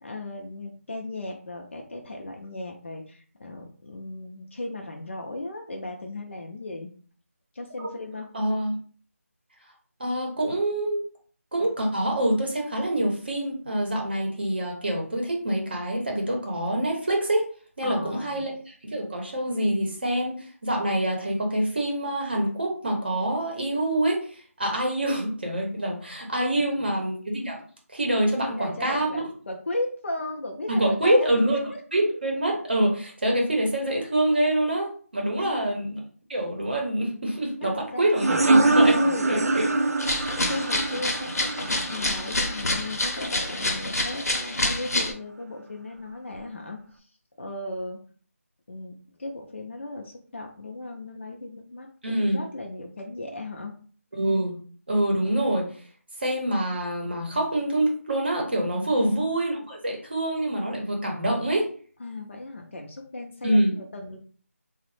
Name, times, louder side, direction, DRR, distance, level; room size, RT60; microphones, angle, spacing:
voice 1, 0.0-6.9 7.5-8.3 17.8-18.5 26.7-27.0 28.4-31.4 31.7-31.8 35.4-35.7 37.6-38.2 39.0-39.6 40.5-47.1 47.4-48.0 48.7-53.7 58.9-59.3 62.0-64.2, left 2 dB, 50° left, 2 dB, 0.5 m, -36 dB
voice 2, 8.3-8.7 10.0-11.0 11.5-17.4 17.8-27.6 27.9-29.2 30.7-31.6 31.9-36.0 36.3-39.0 39.3-39.6 52.0-52.4 54.2-54.6 54.9-55.7 56.2-61.7 63.4-63.8, right 1 dB, 40° right, 0 dB, 0.7 m, -25 dB
sound 1, 38.2-43.5, right 2 dB, 80° right, 0.5 m, -24 dB
sound 2, 40.0-45.1, left 2 dB, 90° left, 0.8 m, -27 dB
3.0 x 2.0 x 3.1 m, 0.44 s
figure-of-eight pair, 175°, 8 cm